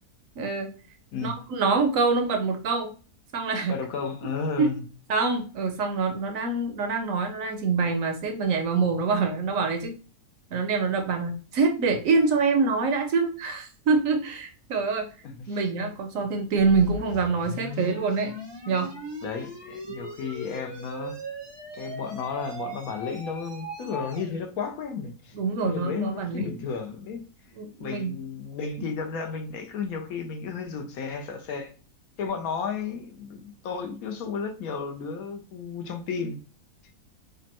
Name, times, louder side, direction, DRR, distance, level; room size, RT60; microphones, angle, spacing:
voice 1, 0.4-0.7 1.2-2.9 3.3-3.8 4.6-4.7 5.1-9.9 10.5-15.1 15.5-18.3 18.7-18.9 25.3-26.6 27.6-28.2, right 4 dB, 65° right, 1.0 m, -25 dB
voice 2, 3.7-4.8 15.4-15.5 19.2-21.2 21.7-27.2 27.8-31.7 32.2-36.4, left 5 dB, 70° left, 1.1 m, -33 dB
sound 1, 16.6-24.3, right 1 dB, 25° right, 0.6 m, -39 dB
5.1 x 2.2 x 2.9 m
omnidirectional pair, 1.6 m